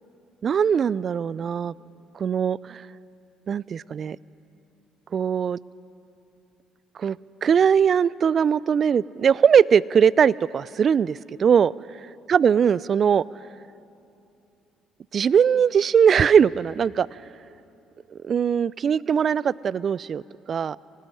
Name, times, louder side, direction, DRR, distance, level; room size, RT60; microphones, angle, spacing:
voice 1, 0.4-1.7 2.1-2.9 3.5-4.2 5.1-5.6 7.0-11.7 12.3-13.2 15.1-17.1 18.1-20.2 20.5-20.8, right 7 dB, 50° right, 22 dB, 0.5 m, -20 dB
25.0 x 18.5 x 9.9 m, 2.8 s
hypercardioid pair, 55°, 0 cm